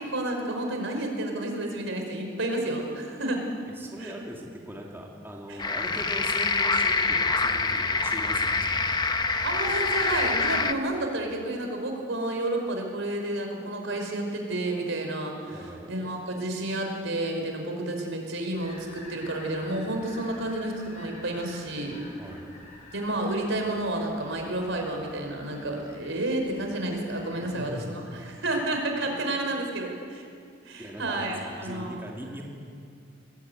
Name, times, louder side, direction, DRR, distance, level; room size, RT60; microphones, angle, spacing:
voice 1, 0.0-3.4 4.0-4.1 5.5-5.6 9.4-15.6 15.9-22.0 22.9-30.2 30.7-32.0, right 1 dB, 70° right, 3 dB, 5.3 m, -30 dB
voice 2, 3.7-8.9 15.5-16.0 22.2-22.4 27.1-27.9 29.0-29.2 30.8-32.4, equal, 10° right, -2 dB, 2.8 m, -40 dB
sound 1, 5.6-10.7, left 3 dB, 20° left, 1.0 m, -25 dB
sound 2, 18.5-27.8, left 2 dB, 40° left, 6.2 m, -49 dB
22.5 x 22.0 x 9.6 m, 2.3 s
head